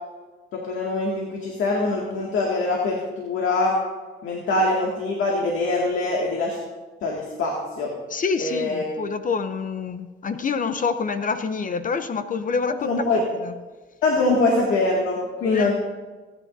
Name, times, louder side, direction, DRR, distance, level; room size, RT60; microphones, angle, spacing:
voice 1, 0.5-3.8 4.2-6.6 7.0-7.9 8.4-8.9 12.7-13.2 14.0-15.7, left 2 dB, 80° left, -2 dB, 2.2 m, -23 dB
voice 2, 8.1-13.5 15.5-15.7, left 5 dB, 40° left, 9 dB, 0.8 m, -27 dB
27.5 x 10.0 x 2.7 m, 1.3 s
cardioid pair, 90°, 20 cm